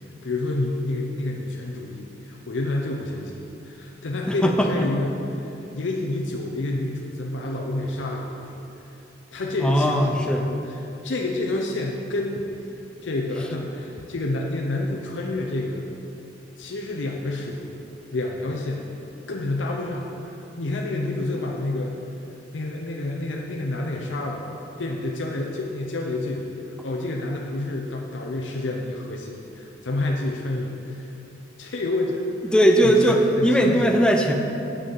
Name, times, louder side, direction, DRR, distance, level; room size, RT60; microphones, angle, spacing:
voice 1, 0.2-8.5 9.3-12.4 12.7-15.8 16.6-17.8 18.1-18.9 19.3-21.9 22.5-24.5 24.8-26.5 26.8-31.2 31.6-32.5 32.8-33.9, left 2 dB, 90° left, 0 dB, 0.7 m, -29 dB
voice 2, 4.3-4.7 9.6-10.4 32.4-34.3, equal, 5° left, 2 dB, 0.6 m, -19 dB
7.9 x 5.5 x 6.5 m, 2.9 s
head